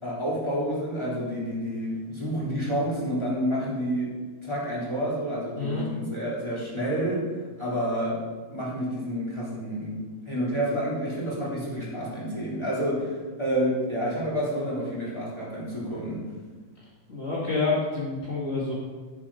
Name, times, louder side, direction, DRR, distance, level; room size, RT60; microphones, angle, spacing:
voice 1, 0.0-4.1 4.4-7.2 7.6-8.2 8.5-10.0 10.2-16.2, equal, 10° left, -7 dB, 2.9 m, -29 dB
voice 2, 5.6-5.9 17.1-18.7, left 3 dB, 55° left, -6 dB, 0.7 m, -28 dB
10.0 x 7.4 x 5.7 m, 1.4 s
omnidirectional pair, 4.6 m